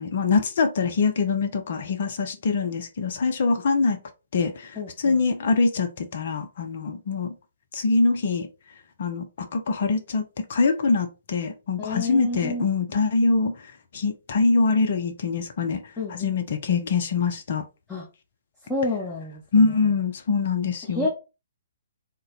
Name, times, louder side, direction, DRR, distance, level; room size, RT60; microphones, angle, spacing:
voice 1, 0.0-4.0 4.3-7.3 7.7-8.5 9.0-9.2 9.5-10.2 10.5-13.6 13.9-15.8 16.1-17.6 19.5-21.1, left 4 dB, 50° left, 0.7 m, -23 dB
voice 2, 4.8-5.2 11.8-12.7 16.0-16.4 17.9-18.0 18.7-19.8 20.9-21.1, left 2 dB, 10° left, 1.0 m, -30 dB
3.8 x 2.2 x 4.0 m
figure-of-eight pair, 125°, 0 cm